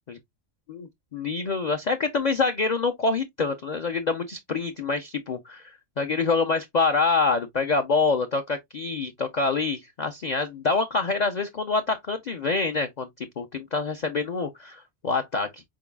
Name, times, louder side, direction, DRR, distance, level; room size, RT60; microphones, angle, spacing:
voice 1, 0.7-15.6, left 4 dB, 65° left, 0.4 m, -26 dB
4.5 x 3.8 x 2.2 m
omnidirectional pair, 1.4 m